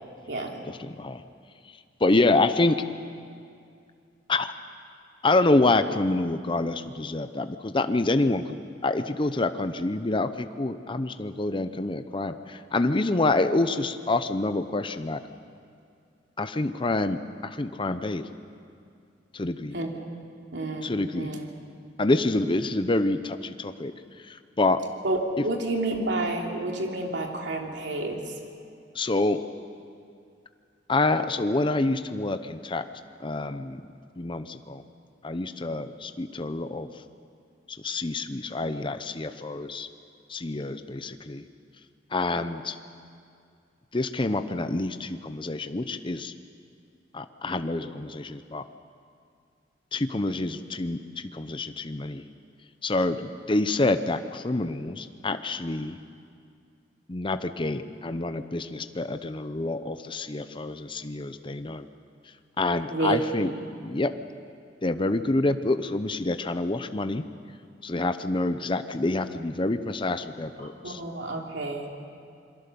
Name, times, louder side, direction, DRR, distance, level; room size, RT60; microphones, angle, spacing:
voice 1, 0.7-1.2 2.0-2.8 4.3-4.5 5.2-15.2 16.4-18.2 19.3-19.8 20.8-21.3 22.0-23.9 24.3-24.8 28.9-29.4 30.9-32.8 33.2-33.8 34.2-34.8 35.2-36.9 37.7-39.9 40.3-41.4 42.1-42.7 43.9-46.3 47.1-48.6 49.9-51.0 51.3-52.2 52.8-56.0 57.1-61.9 62.6-63.5 63.8-64.1 64.8-67.2 67.8-71.0, left 2 dB, 30° left, 10 dB, 0.7 m, -27 dB
voice 2, 19.7-20.0 20.5-21.5 25.0-28.2 62.9-63.5 70.6-71.9, right 2 dB, 80° right, 1 dB, 3.1 m, -30 dB
27.0 x 22.5 x 7.0 m, 2.4 s
head